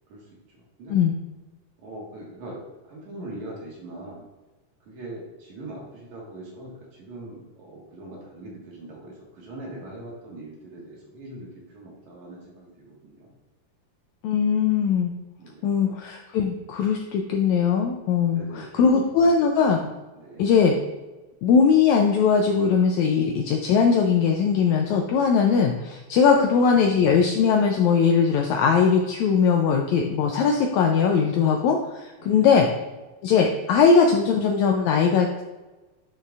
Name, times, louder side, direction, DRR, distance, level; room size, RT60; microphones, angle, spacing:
voice 1, 0.5-1.0 1.8-4.3 4.9-13.3 15.4-15.9 18.3-18.9 20.1-20.5 26.3-26.4 32.2-32.6, right 1 dB, 65° right, -3 dB, 2.8 m, -41 dB
voice 2, 14.2-15.1 15.6-19.9 20.4-20.7 21.4-32.7 33.2-35.4, left 6 dB, 80° left, 2 dB, 1.7 m, -20 dB
9.1 x 6.5 x 2.4 m, 1.2 s
omnidirectional pair, 3.8 m